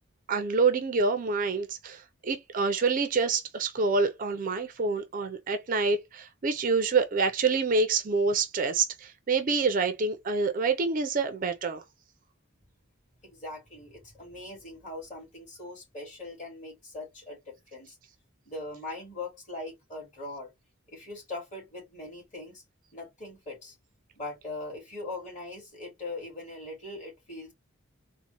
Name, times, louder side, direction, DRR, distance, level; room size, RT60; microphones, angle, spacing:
voice 1, 0.3-11.8, right 4 dB, 40° right, 0.4 m, -27 dB
voice 2, 13.2-18.0 18.5-20.5 20.9-22.6 22.9-23.8 24.1-27.5, left 2 dB, 35° left, 2.2 m, -41 dB
4.0 x 2.0 x 2.8 m
head